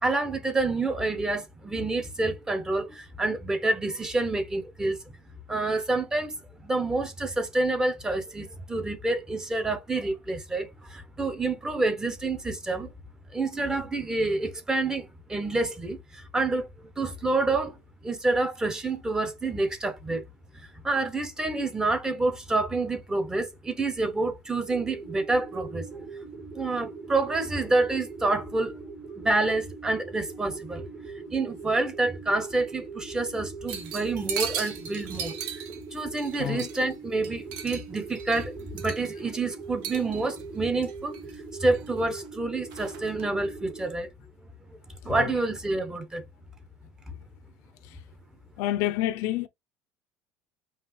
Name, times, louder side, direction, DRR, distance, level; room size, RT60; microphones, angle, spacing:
voice 1, 0.0-5.0 5.5-6.4 6.6-12.9 13.3-16.7 17.0-17.8 18.0-20.2 20.8-25.9 26.5-28.8 29.2-30.9 31.3-35.4 35.9-41.2 41.6-44.1 45.0-46.2, right 2 dB, 10° right, 0.7 m, -28 dB
sound 1, 24.7-43.9, right 4 dB, 55° right, 2.3 m, -42 dB
sound 2, 33.7-36.9 37.2-39.3 39.8-40.4 40.8-41.4 41.7-42.3 42.7-43.3, right 8 dB, 85° right, 1.1 m, -37 dB
voice 2, 48.6-49.5, left 14 dB, 65° left, 0.5 m, -28 dB
5.6 x 2.4 x 3.2 m
cardioid pair, 145°, 6 cm